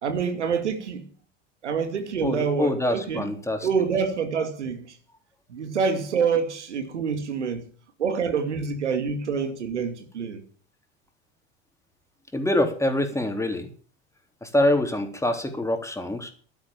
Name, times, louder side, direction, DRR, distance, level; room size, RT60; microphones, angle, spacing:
voice 1, 0.0-1.1 1.6-3.3 3.6-5.0 5.5-7.7 8.0-10.4, right 6 dB, 85° right, 2.5 m, -26 dB
voice 2, 2.2-3.7 12.3-13.7 14.4-16.3, left 1 dB, 10° left, 3.6 m, -25 dB
12.0 x 10.5 x 7.4 m
hypercardioid pair, 75°, 34 cm